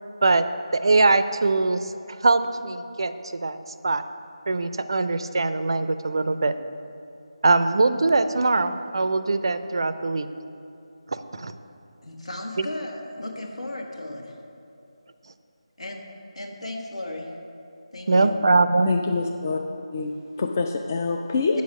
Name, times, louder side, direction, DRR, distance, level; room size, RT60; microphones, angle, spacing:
voice 1, 0.7-1.8 2.2-3.6 3.8-4.0 4.5-6.5 7.4-10.3 11.1-11.5 12.6-12.7 18.1-18.9, right 3 dB, 45° right, 11 dB, 0.4 m, -22 dB
voice 2, 12.0-14.3 15.8-16.0 16.3-17.3 17.9-18.4, left 1 dB, 70° left, 1 dB, 1.5 m, -35 dB
voice 3, 18.9-19.6 19.9-21.6, left 4 dB, 25° left, 3 dB, 0.3 m, -26 dB
8.3 x 6.3 x 6.2 m, 2.7 s
figure-of-eight pair, 160°, 3 cm